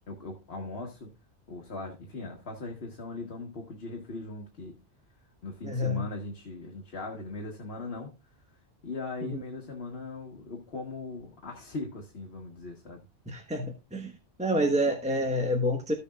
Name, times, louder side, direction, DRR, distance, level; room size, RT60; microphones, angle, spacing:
voice 1, 0.1-1.1 1.5-4.8 5.4-8.1 8.8-13.0, left 3 dB, 65° left, 1.6 m, -39 dB
voice 2, 5.6-6.0 9.2-9.4 13.3-14.1 14.4-15.9, equal, 5° right, 1.1 m, -28 dB
14.0 x 7.0 x 2.3 m
omnidirectional pair, 1.1 m